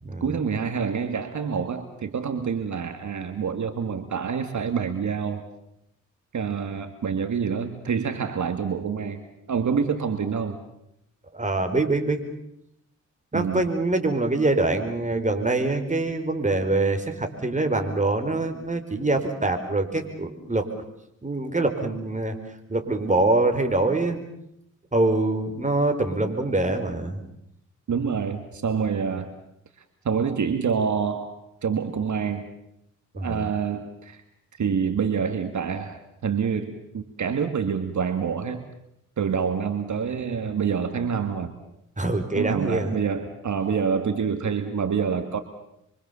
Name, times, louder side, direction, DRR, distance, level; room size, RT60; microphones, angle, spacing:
voice 1, 0.2-5.4 6.3-9.2 9.5-10.6 13.3-13.6 27.9-29.3 30.1-31.3 31.6-32.5 33.1-34.2 34.6-38.6 39.2-41.5 42.4-45.4, right 6 dB, 70° right, 8 dB, 2.0 m, -27 dB
voice 2, 11.3-12.2 13.3-20.7 21.2-22.4 22.7-24.2 24.9-27.2 33.1-33.5 42.0-42.9, right 2 dB, 25° right, 6 dB, 4.6 m, -24 dB
26.5 x 24.5 x 7.0 m, 0.79 s
cardioid pair, 65°, 31 cm